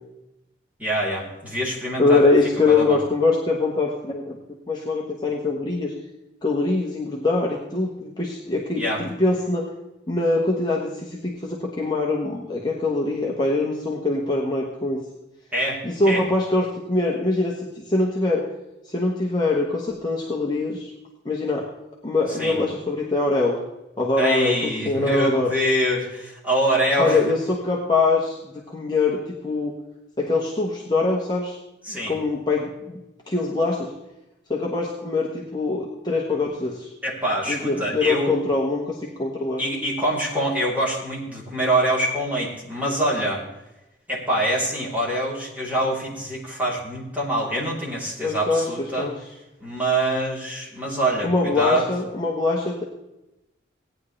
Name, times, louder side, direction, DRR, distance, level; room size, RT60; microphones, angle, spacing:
voice 1, 0.8-2.2 2.7-3.0 8.7-9.0 15.5-16.2 22.3-22.6 24.2-27.2 31.8-32.2 37.0-38.3 39.6-43.4 44.1-49.1 49.6-51.9, right 1 dB, 10° right, -6 dB, 3.4 m, -25 dB
voice 2, 2.0-4.4 4.7-5.9 6.4-9.7 10.1-15.0 15.8-18.5 18.9-20.9 21.2-21.7 22.0-23.6 24.0-25.5 27.0-29.7 30.2-31.6 31.9-33.9 34.5-36.9 37.5-39.6 48.2-49.1 51.2-52.8, left 3 dB, 20° left, -3 dB, 1.3 m, -23 dB
17.5 x 9.9 x 3.3 m, 0.94 s
head